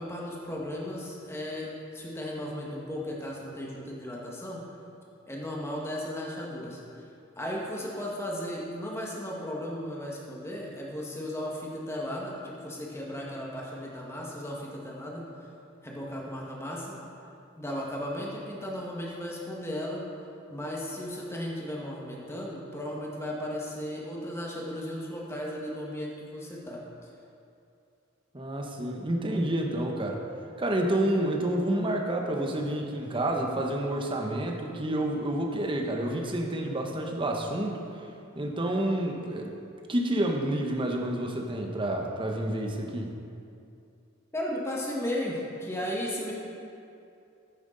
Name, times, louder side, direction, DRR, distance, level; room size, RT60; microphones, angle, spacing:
voice 1, 0.0-4.6 5.3-6.8 7.3-15.2 15.8-17.0 17.6-20.0 20.5-26.8 44.3-46.3, left 1 dB, 15° left, -3 dB, 1.6 m, -35 dB
voice 2, 28.3-30.2 30.6-37.8 38.4-39.5 39.9-43.1, right 1 dB, 25° right, 1 dB, 1.0 m, -29 dB
10.0 x 9.3 x 3.9 m, 2.5 s
head